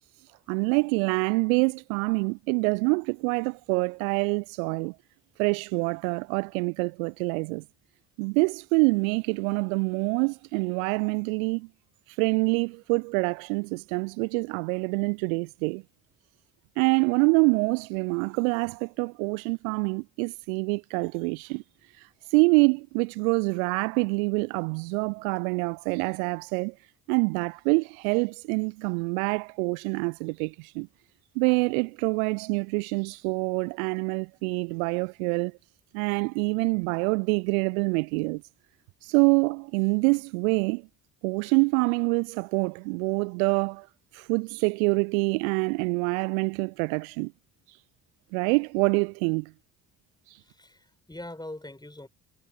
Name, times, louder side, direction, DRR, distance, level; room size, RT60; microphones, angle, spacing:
voice 1, 0.5-5.0 5.4-7.6 8.2-11.7 12.1-15.8 16.8-21.6 21.9-26.7 27.1-30.9 31.4-35.5 35.9-38.4 39.0-40.8 41.2-43.9 44.1-47.3 47.7-47.8 48.3-49.5 50.3-50.4, right 34 dB, 60° right, 0.5 m, -26 dB
voice 2, 50.4-52.1, left 1 dB, 10° left, 7.1 m, -42 dB
figure-of-eight pair, 50°, 48 cm